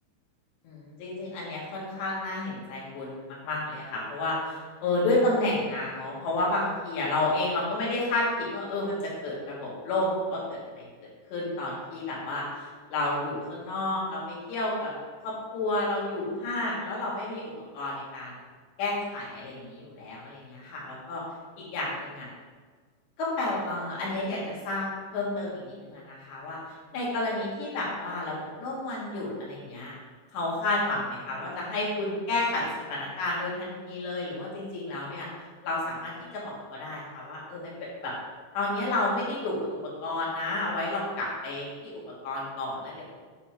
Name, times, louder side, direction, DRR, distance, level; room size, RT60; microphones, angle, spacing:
voice 1, 0.6-10.8 11.3-14.9 15.2-18.3 18.8-21.2 21.6-22.3 23.2-26.6 26.9-29.9 30.3-35.3 35.6-37.7 38.0-38.1 38.5-43.1, left 2 dB, 65° left, -5 dB, 4.7 m, -31 dB
9.7 x 5.8 x 6.1 m, 1.5 s
omnidirectional pair, 5.6 m